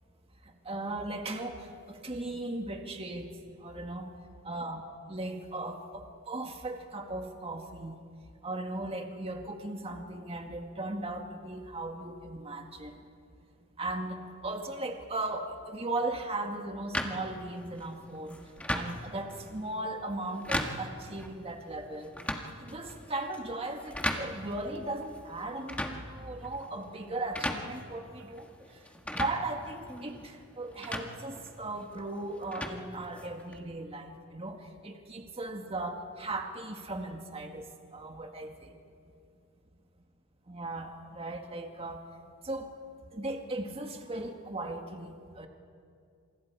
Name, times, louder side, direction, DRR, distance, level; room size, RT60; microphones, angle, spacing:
voice 1, 0.7-3.3 3.6-4.2 4.4-4.8 5.1-8.0 8.4-13.0 13.8-22.2 22.6-28.8 29.1-38.8 40.5-42.1 42.4-42.7 43.1-45.5, right 2 dB, 25° right, 3 dB, 1.9 m, -37 dB
sound 1, 16.9-33.6, left 1 dB, 5° left, 1.6 m, -39 dB
29.5 x 27.5 x 4.8 m, 2.3 s
head